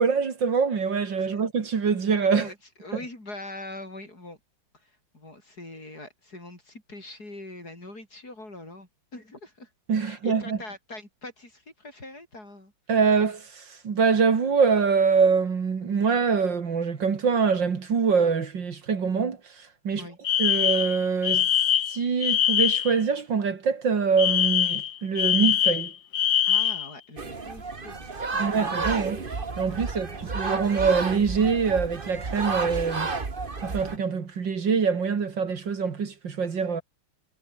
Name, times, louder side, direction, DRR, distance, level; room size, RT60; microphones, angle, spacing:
voice 1, 0.0-2.5 9.9-10.6 12.9-19.4 19.8-20.0 20.4-21.5 21.9-25.9 28.4-29.2 29.6-30.1 30.3-33.1 33.6-36.8, right 5 dB, 60° right, 2.8 m, -24 dB
voice 2, 2.4-4.4 4.7-9.7 10.0-12.7 19.9-20.2 26.5-28.6 29.8-30.4, left 2 dB, 45° left, 8.5 m, -43 dB
Alarm, 20.2-23.0 24.2-26.9, left 10 dB, 65° left, 1.8 m, -23 dB
sound 1, 27.2-34.0, right 4 dB, 25° right, 1.9 m, -31 dB
omnidirectional pair, 2.2 m